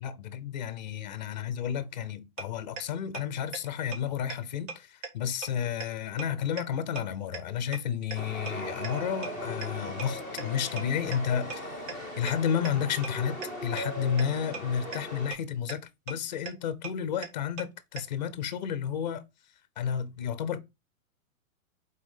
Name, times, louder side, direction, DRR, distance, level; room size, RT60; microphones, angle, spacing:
voice 1, 0.0-11.8 12.2-19.2 19.8-20.6, left 8 dB, 30° left, 0.5 m, -32 dB
sound 1, 2.4-2.5 2.8-2.9 3.1-3.2 3.5-3.6 3.9-4.0 4.3-4.4 4.7-4.8 5.0-5.1 5.4-5.5 5.8-5.9 6.2-6.3 6.6-6.7 7.0-7.1 7.3-7.4 7.7-7.8 8.1-8.2 8.5-8.6 8.8-8.9 9.2-9.3 9.6-9.7 10.0-10.1 10.4-10.5 10.8-10.9 11.1-11.2 11.5-11.6 11.9-12.0 12.3-12.4 12.7-12.8 13.0-13.1 13.4-13.5 13.8-13.9 14.2-14.3 14.5-14.6 14.9-15.0 15.3-15.4 15.7-15.8 16.1-16.2 16.5-16.6 16.8-16.9 17.2-17.3 17.6-17.7 18.0-18.1, right 5 dB, 60° right, 1.7 m, -36 dB
Chatter / Subway metro underground, 8.1-15.3, left 1 dB, 10° right, 0.6 m, -38 dB
5.2 x 4.0 x 5.3 m
hypercardioid pair, 170°, 43 cm